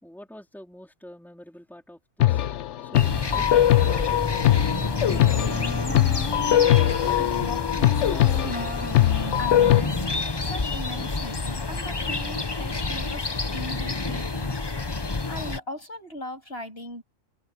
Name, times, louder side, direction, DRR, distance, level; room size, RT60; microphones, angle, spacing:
voice 1, 0.0-2.4 2.8-4.6, equal, ahead, 4.0 m, -45 dB
sound 1, 2.2-9.8, left 13 dB, 75° left, 1.0 m, -21 dB
sound 2, 2.9-15.6, left 3 dB, 25° left, 0.9 m, -29 dB
Wind instrument woodwind instrument, 4.3-10.3, left 4 dB, 90° left, 2.1 m, -35 dB
voice 2, 5.8-8.9 9.4-10.1 10.4-14.5 15.3-17.0, left 1 dB, 55° left, 8.2 m, -39 dB
omnidirectional pair, 1.3 m